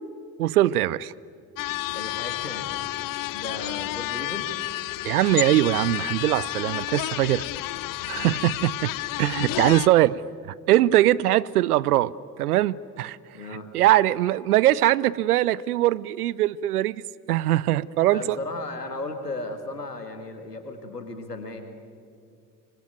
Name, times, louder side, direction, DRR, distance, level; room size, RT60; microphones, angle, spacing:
voice 1, 0.4-1.1 5.0-7.5 8.1-10.2 10.5-13.2 13.7-17.0 17.3-18.4, right 14 dB, 75° right, 0.6 m, -22 dB
sound 1, 1.6-9.9, left 18 dB, 45° left, 0.7 m, -31 dB
voice 2, 1.9-2.8 3.3-4.5 8.1-8.7 13.3-13.7 18.1-21.6, left 2 dB, 90° left, 2.0 m, -36 dB
25.0 x 24.0 x 9.2 m
figure-of-eight pair, 55°, 46 cm